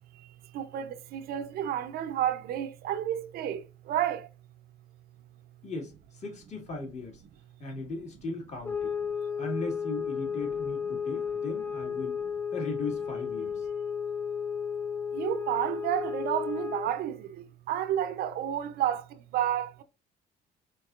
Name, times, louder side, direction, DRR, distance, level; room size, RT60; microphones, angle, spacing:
voice 1, 0.5-4.3 15.1-17.3 17.7-19.0 19.3-19.8, right 10 dB, 65° right, 0.6 m, -30 dB
voice 2, 5.6-7.2 7.6-9.0 9.4-12.3 12.5-13.7, left 3 dB, 40° left, 2.2 m, -38 dB
sound 1, 8.6-17.0, left 6 dB, 10° left, 0.4 m, -33 dB
4.5 x 4.0 x 2.4 m
cardioid pair, 110°, 17 cm